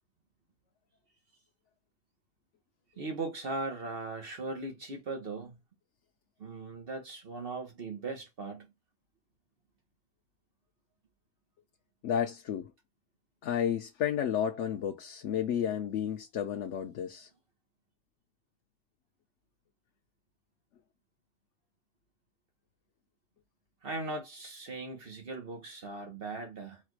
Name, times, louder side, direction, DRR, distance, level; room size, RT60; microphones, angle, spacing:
voice 1, 3.0-5.6 6.4-8.7 23.8-26.8, right 3 dB, 55° right, 1.3 m, -39 dB
voice 2, 12.0-12.7 13.4-17.3, left 9 dB, 90° left, 1.0 m, -32 dB
4.7 x 2.4 x 4.5 m
omnidirectional pair, 1.2 m